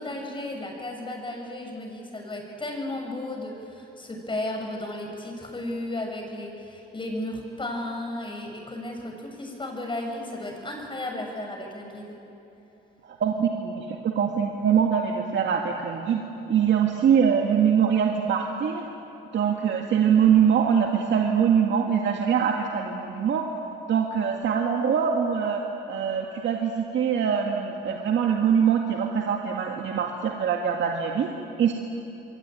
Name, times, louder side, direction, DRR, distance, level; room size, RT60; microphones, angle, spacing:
voice 1, 0.0-12.1, left 1 dB, 25° left, 2 dB, 7.1 m, -34 dB
voice 2, 13.0-16.2 16.5-18.9 19.3-23.5 23.9-25.6 25.9-31.3 31.6-31.7, right 7 dB, 65° right, 1 dB, 2.1 m, -23 dB
28.0 x 22.5 x 9.2 m, 2.9 s
cardioid pair, 90°, 20 cm